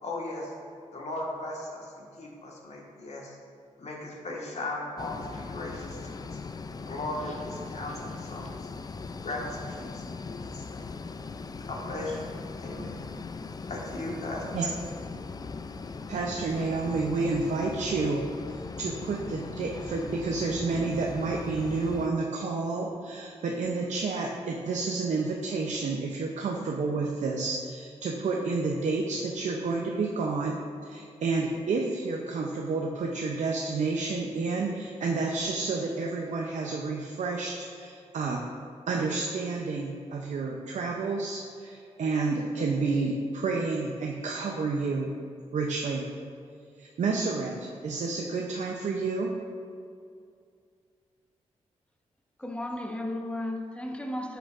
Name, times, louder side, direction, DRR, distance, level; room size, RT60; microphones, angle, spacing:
voice 1, 0.0-0.5 0.9-3.4 3.8-6.4 6.9-8.5 9.2-10.9 11.7-12.4 12.6-13.0 13.7-14.4, left 2 dB, 60° left, 1.7 m, -37 dB
sound 1, 5.0-22.1, left 4 dB, 30° left, 0.4 m, -39 dB
voice 2, 16.1-38.4 38.9-45.1 45.5-46.0 46.8-47.5 47.8-49.3, right 3 dB, 70° right, 0.7 m, -30 dB
voice 3, 52.4-54.4, left 1 dB, 10° left, 0.9 m, -34 dB
10.5 x 6.8 x 2.6 m
cardioid pair, 50°, 13 cm